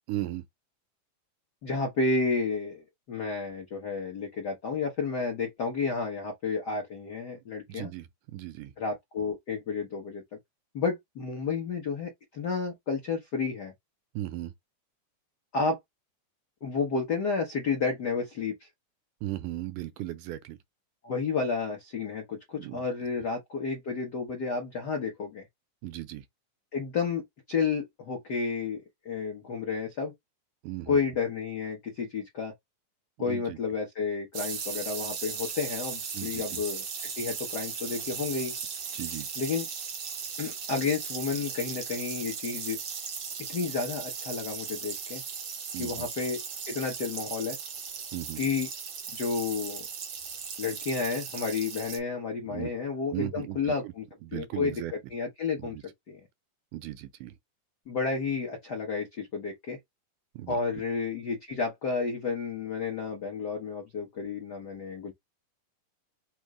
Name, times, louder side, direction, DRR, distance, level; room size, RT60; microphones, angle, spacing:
voice 1, 0.1-0.4 7.7-8.7 14.2-14.5 19.2-20.6 22.6-22.8 25.8-26.3 30.6-31.0 33.2-33.6 36.1-36.6 38.9-39.3 45.7-46.1 48.1-48.4 52.5-52.7 53.1-53.9 54.2-54.9 55.6-55.8 56.7-57.4 60.3-60.6, right 15 dB, 80° right, 2.1 m, -37 dB
voice 2, 1.6-7.9 8.8-10.2 10.7-13.7 15.5-15.8 16.6-18.7 21.0-25.4 26.7-30.1 30.9-32.5 33.2-36.8 37.2-38.5 39.4-39.7 40.4-42.8 43.5-45.2 45.8-46.4 46.7-47.6 48.4-48.7 49.1-49.9 50.6-54.0 54.3-55.8 56.1-56.2 57.9-59.8 60.5-65.1, left 4 dB, 75° left, 0.9 m, -31 dB
sound 1, 34.3-52.0, right 6 dB, 65° right, 1.2 m, -37 dB
5.3 x 2.0 x 4.8 m
omnidirectional pair, 3.6 m